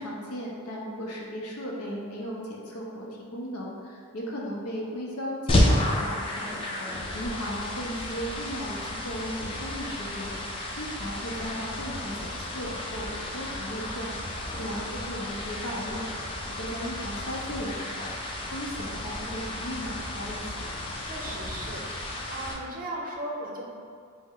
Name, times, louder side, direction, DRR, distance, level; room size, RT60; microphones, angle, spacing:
voice 1, 0.0-3.1 3.3-6.9 7.1-16.1 16.6-20.7, equal, 75° left, -3 dB, 0.7 m, -36 dB
sound 1, 5.5-22.5, left 1 dB, 25° left, 0.4 m, -32 dB
voice 2, 6.7-7.2 14.4-14.7 21.0-21.8 22.3-23.7, right 1 dB, 40° right, -2 dB, 0.6 m, -37 dB
4.4 x 2.1 x 3.6 m, 2.1 s
head